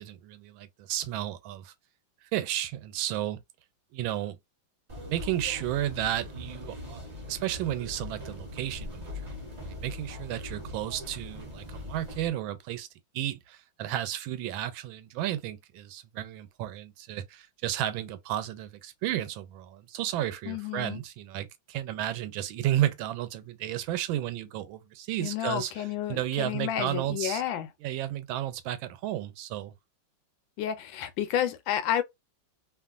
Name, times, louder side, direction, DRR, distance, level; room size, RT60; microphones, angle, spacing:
voice 1, 0.0-1.7 2.3-3.4 3.9-4.4 5.0-7.0 7.3-9.4 9.6-12.9 13.1-27.4 27.8-29.7, right 12 dB, 90° right, 1.4 m, -33 dB
sound 1, 4.9-12.3, left 2 dB, 25° right, 1.0 m, -41 dB
voice 2, 20.5-21.0 25.2-27.7 30.6-32.0, left 10 dB, 80° left, 1.3 m, -30 dB
3.0 x 2.4 x 2.3 m
omnidirectional pair, 2.1 m